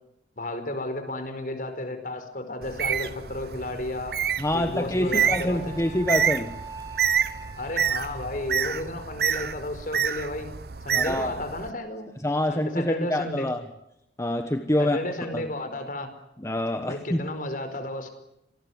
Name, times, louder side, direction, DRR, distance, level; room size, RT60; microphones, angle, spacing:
voice 1, 0.3-4.2 4.5-5.8 7.6-10.5 10.8-12.1 12.5-13.5 14.8-16.1 16.8-18.1, left 1 dB, 50° left, 9 dB, 4.9 m, -33 dB
Bird, 2.6-11.7, right 8 dB, 60° right, 0.9 m, -28 dB
voice 2, 4.4-6.6 10.9-11.3 12.2-13.6 14.2-15.0 15.3-15.5 16.4-17.3, left 1 dB, 15° left, 7 dB, 1.3 m, -26 dB
Wind instrument woodwind instrument, 5.0-9.4, right 4 dB, 20° right, 2.8 m, -44 dB
26.5 x 19.5 x 9.6 m, 0.81 s
head